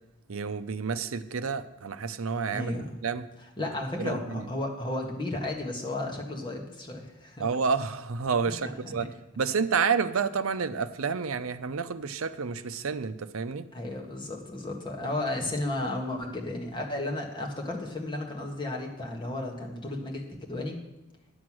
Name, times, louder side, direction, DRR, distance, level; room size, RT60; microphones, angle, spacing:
voice 1, 0.3-2.8 3.0-3.3 4.0-4.5 7.4-13.7, right 5 dB, 70° right, 11 dB, 0.6 m, -29 dB
voice 2, 2.5-3.0 3.6-7.4 8.4-8.5 8.9-9.1 13.7-20.8, left 2 dB, 20° left, 0 dB, 1.7 m, -33 dB
10.5 x 8.0 x 6.2 m, 0.97 s
head